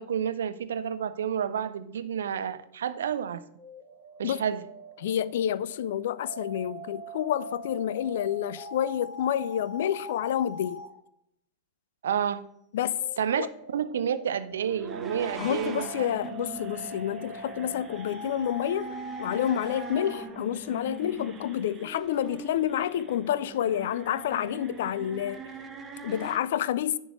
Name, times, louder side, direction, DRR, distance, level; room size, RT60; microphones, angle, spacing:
voice 1, 0.0-3.4 4.2-4.6 12.0-12.4 13.2-13.5 13.7-16.1, right 8 dB, 65° right, 0.5 m, -30 dB
sound 1, 3.6-10.9 13.0-20.3, equal, 5° left, 2.2 m, -43 dB
voice 2, 5.0-10.8 12.7-13.0 13.4-13.5 15.4-18.9 19.2-25.4 26.0-27.0, left 10 dB, 55° left, 0.4 m, -29 dB
sound 2, 14.6-26.4, right 5 dB, 20° right, 0.9 m, -42 dB
10.0 x 3.9 x 6.2 m
figure-of-eight pair, 90°, 0 cm